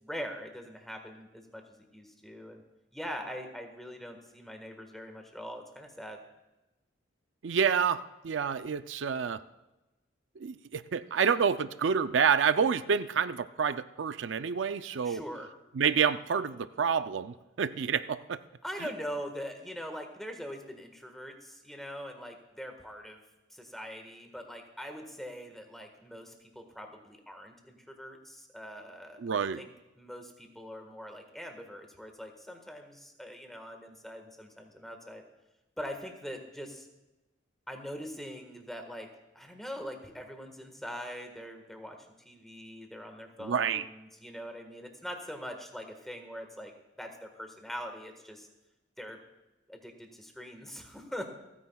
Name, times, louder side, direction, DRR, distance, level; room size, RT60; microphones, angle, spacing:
voice 1, 0.0-2.6 2.9-6.2 15.0-15.5 18.6-23.2 23.5-29.2 29.6-29.7 30.0-35.2 35.8-36.9 37.7-39.1 39.3-42.0 42.2-46.7 47.0-48.5 49.0-49.2 49.7-51.3, equal, ahead, 4 dB, 1.5 m, -42 dB
voice 2, 7.4-9.4 10.4-15.2 15.7-18.4 29.2-29.6 43.4-43.9, right 6 dB, 85° right, 12 dB, 0.5 m, -28 dB
28.5 x 9.8 x 2.3 m, 1.0 s
head